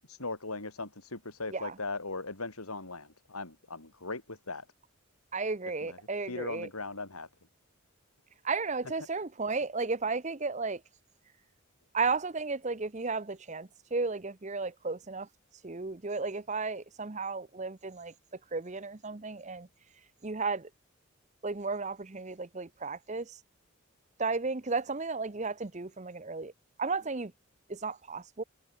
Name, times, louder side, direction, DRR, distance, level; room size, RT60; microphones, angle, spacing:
voice 1, 0.1-4.7 5.8-7.3, left 3 dB, 85° left, 5.2 m, -39 dB
voice 2, 5.3-6.7 8.4-10.8 11.9-15.3 15.6-18.1 18.5-19.7 20.2-20.6 21.4-23.2 24.2-26.5 26.8-27.3 27.7-28.4, right 4 dB, 30° right, 0.8 m, -34 dB
head